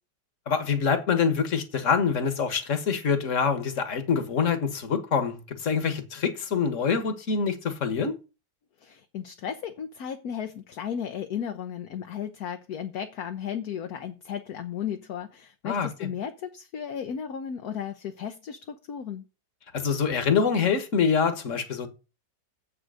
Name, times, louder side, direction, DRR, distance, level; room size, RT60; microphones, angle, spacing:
voice 1, 0.5-8.1 15.6-15.9 19.7-21.9, left 6 dB, 45° left, 1.7 m, -25 dB
voice 2, 8.8-19.2, left 8 dB, 60° left, 1.2 m, -35 dB
7.8 x 7.8 x 6.3 m
omnidirectional pair, 2.0 m